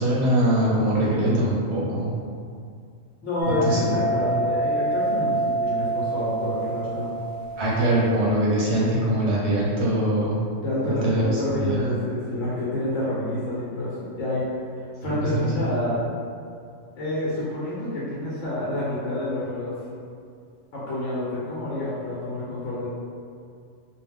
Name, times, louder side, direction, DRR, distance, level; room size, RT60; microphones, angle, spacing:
voice 1, 0.0-2.1 3.6-3.8 7.6-10.4 10.8-11.2 11.6-12.0 15.0-15.5, right 1 dB, 65° right, -5 dB, 0.8 m, -22 dB
voice 2, 3.2-7.1 10.6-14.6 15.0-16.0 16.9-19.8 20.7-22.9, left 1 dB, 75° left, -8 dB, 0.9 m, -28 dB
sound 1, 3.4-8.1, right 2 dB, 25° right, 0.5 m, -27 dB
2.4 x 2.1 x 3.4 m, 2.3 s
omnidirectional pair, 1.3 m